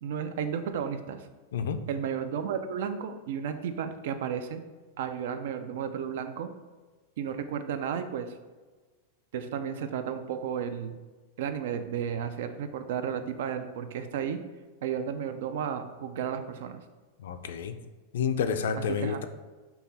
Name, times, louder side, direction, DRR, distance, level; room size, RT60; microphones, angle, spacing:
voice 1, 0.0-1.3 1.9-4.6 5.0-6.5 7.2-8.3 9.3-10.9 11.4-14.4 14.8-16.8 18.9-19.2, right 8 dB, 65° right, 9 dB, 0.4 m, -33 dB
voice 2, 17.2-17.8 18.1-19.3, left 7 dB, 85° left, 9 dB, 0.4 m, -29 dB
5.5 x 2.3 x 4.0 m, 1.3 s
supercardioid pair, 165°, 0 cm